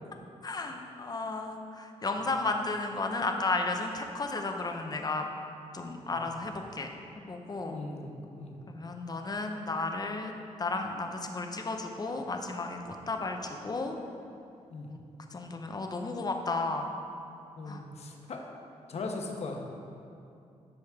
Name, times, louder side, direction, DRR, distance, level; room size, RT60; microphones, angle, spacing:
voice 1, 0.4-5.3 5.7-6.9 7.3-7.8 8.7-10.3 10.6-14.0 14.9-15.0 15.3-16.9 17.7-17.8, left 3 dB, 30° left, 4 dB, 0.8 m, -33 dB
voice 2, 7.7-8.6 14.7-14.9 17.6-18.4 18.9-19.6, left 3 dB, 55° left, 1 dB, 1.1 m, -39 dB
12.5 x 5.1 x 3.6 m, 2.6 s
cardioid pair, 95°, 13 cm